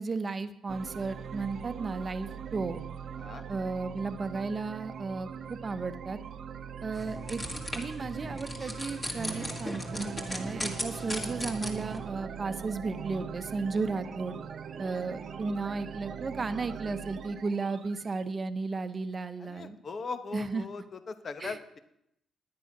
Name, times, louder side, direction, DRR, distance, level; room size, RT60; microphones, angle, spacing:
voice 1, 0.0-2.8 3.5-6.2 6.8-7.4 7.7-14.4 14.8-19.8 20.3-20.6 21.4-21.5, right 4 dB, 35° right, 11 dB, 0.9 m, -34 dB
sound 1, 0.7-18.2, right 7 dB, 55° right, 0.7 m, -41 dB
sound 2, 6.9-12.0, left 1 dB, 25° left, 2.3 m, -38 dB
voice 2, 15.0-15.4 19.4-21.8, left 4 dB, 45° left, 10 dB, 1.1 m, -41 dB
10.5 x 9.3 x 6.0 m, 0.80 s
cardioid pair, 90°, 0 cm